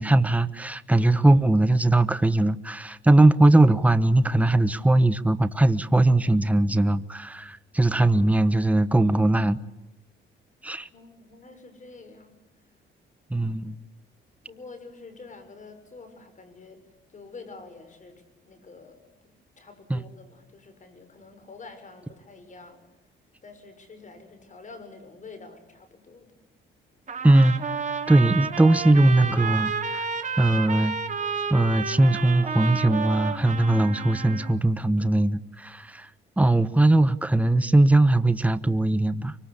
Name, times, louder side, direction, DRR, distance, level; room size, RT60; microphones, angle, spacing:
voice 1, 0.0-9.6 10.6-10.9 13.3-13.8 19.9-20.0 27.2-27.6 28.1-30.1 30.4-31.0 31.5-36.1 36.4-39.3, right 2 dB, 5° right, 12 dB, 1.1 m, -20 dB
voice 2, 10.9-12.4 14.4-16.8 17.1-22.8 23.4-26.3, left 3 dB, 40° left, 9 dB, 6.7 m, -47 dB
Trumpet, 27.1-34.5, right 5 dB, 40° right, 3.2 m, -31 dB
25.0 x 24.5 x 8.4 m, 0.97 s
cardioid pair, 90°, 20 cm